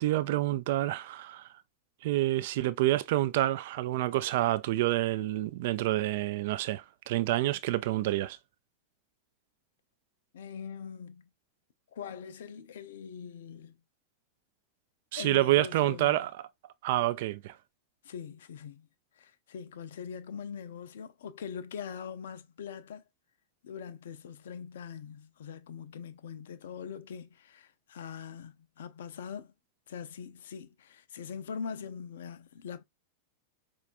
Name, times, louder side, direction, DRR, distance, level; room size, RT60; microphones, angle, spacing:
voice 1, 0.0-1.5 2.0-8.4 15.1-16.4 16.8-17.6, right 15 dB, 50° right, 0.3 m, -28 dB
voice 2, 10.3-11.3 11.9-13.8 15.2-16.3 18.0-18.9 19.2-23.0 23.6-29.5 29.9-32.8, left 7 dB, 60° left, 0.4 m, -42 dB
4.8 x 2.3 x 2.4 m
figure-of-eight pair, 90°, 0 cm